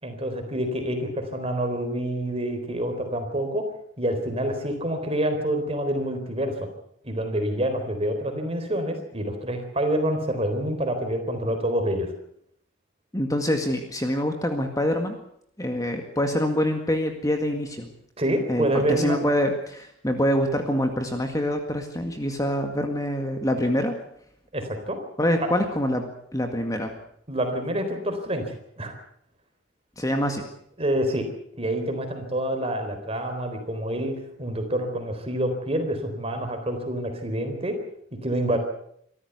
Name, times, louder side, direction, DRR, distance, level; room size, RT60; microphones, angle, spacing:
voice 1, 0.0-3.6 4.0-6.7 7.0-12.1 18.2-19.2 24.5-25.0 27.3-28.9 30.8-31.3 31.6-37.8 38.2-38.6, right 1 dB, 30° right, 6 dB, 3.9 m, -27 dB
voice 2, 13.1-15.2 15.6-17.9 18.5-23.9 25.2-26.0 26.3-26.9 30.0-30.4, equal, 15° left, 5 dB, 1.9 m, -25 dB
25.0 x 13.5 x 8.2 m, 0.70 s
head